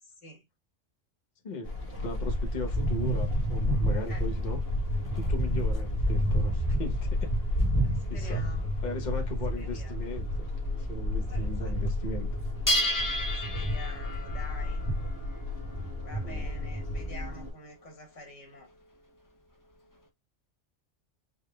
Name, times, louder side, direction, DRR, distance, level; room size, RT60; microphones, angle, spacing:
voice 1, 1.4-4.6 5.1-7.3 8.1-8.5 8.8-10.3 10.8-12.4 16.2-16.4, left 2 dB, 40° left, 1.2 m, -38 dB
sound 1, 1.7-17.5, equal, 55° left, 1.8 m, -30 dB
sound 2, 3.6-5.5 6.1-7.8 8.4-8.7 9.2-9.3 9.6-9.7 9.9-10.9 11.2-11.8 12.1-20.0, left 1 dB, 20° left, 0.8 m, -36 dB
voice 2, 7.7-8.8 9.6-10.0 11.3-11.7 13.3-14.8 16.0-18.7, left 1 dB, 85° left, 2.1 m, -47 dB
5.9 x 3.5 x 2.3 m
omnidirectional pair, 1.2 m